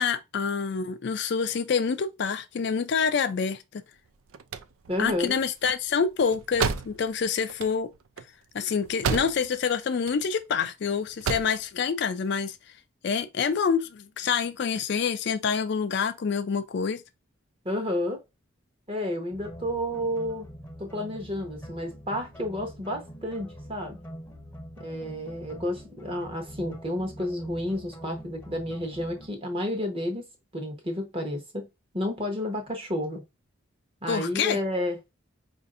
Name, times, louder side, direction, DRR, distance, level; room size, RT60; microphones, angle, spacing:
voice 1, 0.0-3.8 5.0-7.9 8.5-12.6 13.0-17.0 34.1-34.6, left 6 dB, 55° left, 0.4 m, -27 dB
sound 1, 4.1-9.7 9.9-10.7 11.0-11.6, right 5 dB, 80° right, 0.4 m, -32 dB
voice 2, 4.9-5.4 17.6-18.2 18.9-20.5 20.8-24.0 24.8-30.3 30.5-31.6 31.9-33.2 34.0-35.0, left 1 dB, 25° right, 0.9 m, -31 dB
sound 2, 19.3-29.3, equal, 10° left, 0.7 m, -44 dB
4.9 x 2.6 x 2.5 m
head